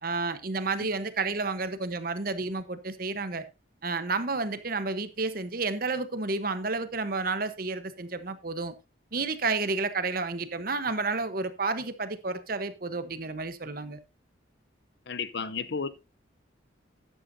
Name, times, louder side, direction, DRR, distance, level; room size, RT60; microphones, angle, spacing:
voice 1, 0.0-3.4 3.8-8.7 9.1-14.0, right 3 dB, 45° right, 1.0 m, -31 dB
voice 2, 15.1-15.9, left 5 dB, 60° left, 0.7 m, -32 dB
13.0 x 10.0 x 2.7 m
head